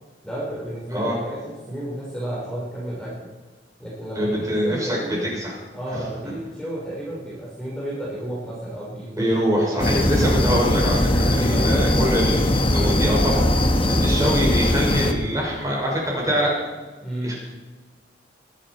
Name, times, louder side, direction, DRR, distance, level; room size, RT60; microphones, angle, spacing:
voice 1, 0.2-1.4 1.7-3.3 3.8-5.2 5.7-10.0 11.5-12.2 17.0-17.3, right 1 dB, 5° left, -7 dB, 3.7 m, -32 dB
voice 2, 4.2-5.6 5.9-6.0 9.2-16.5 17.2-17.3, equal, 20° right, -3 dB, 5.9 m, -24 dB
sound 1, 9.8-15.1, left 1 dB, 30° left, 1.2 m, -20 dB
21.5 x 11.5 x 4.3 m, 1.3 s
head